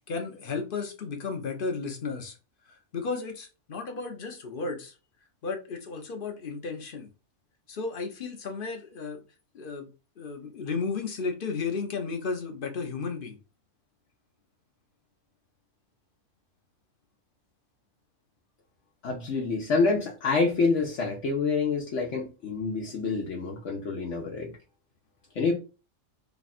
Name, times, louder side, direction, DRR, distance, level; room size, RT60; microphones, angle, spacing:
voice 1, 0.1-2.4 2.7-4.9 5.4-7.1 7.7-9.2 9.5-9.9 10.2-13.4, left 4 dB, 45° left, 0.9 m, -34 dB
voice 2, 19.0-24.5 25.3-25.5, left 4 dB, 70° left, 1.1 m, -27 dB
3.3 x 2.4 x 4.1 m
omnidirectional pair, 1.3 m